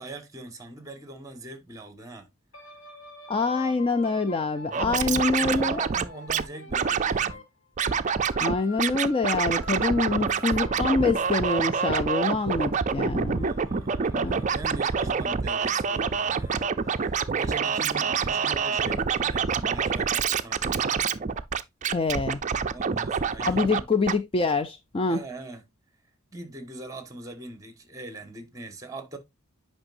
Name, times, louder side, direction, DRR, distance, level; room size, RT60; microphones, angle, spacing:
voice 1, 0.0-2.3 4.7-7.4 10.0-11.5 13.3-21.1 22.7-23.8 25.1-25.6 26.3-29.2, right 2 dB, 15° right, 1.3 m, -42 dB
sound 1, 2.5-8.0 8.3-18.5, left 3 dB, 65° left, 2.0 m, -47 dB
voice 2, 3.3-5.8 8.4-13.5 14.1-14.4 21.9-22.4 23.4-25.2, left 3 dB, 25° left, 0.4 m, -26 dB
Scratching (performance technique), 4.7-6.4 6.7-7.3 7.8-8.5 8.8-23.8 24.1-24.2, right 6 dB, 35° right, 0.4 m, -26 dB
8.8 x 5.5 x 2.5 m
head